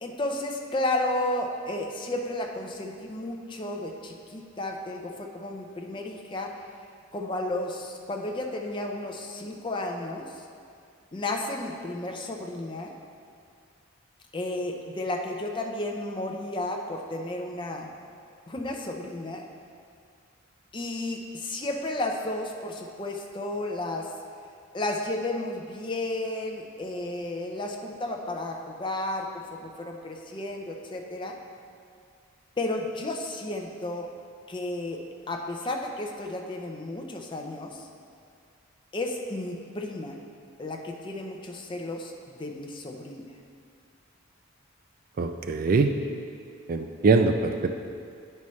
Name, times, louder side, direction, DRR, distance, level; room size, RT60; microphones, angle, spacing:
voice 1, 0.0-6.5 7.1-10.4 11.1-12.9 14.3-17.9 18.5-19.4 20.7-24.1 24.7-31.3 32.6-34.1 34.5-35.0 35.3-37.9 38.9-40.2 40.6-43.2, left 2 dB, 25° left, 2 dB, 0.5 m, -33 dB
voice 2, 45.2-45.9 46.7-47.7, right 4 dB, 45° right, 6 dB, 0.3 m, -22 dB
10.0 x 5.5 x 3.2 m, 2.3 s
head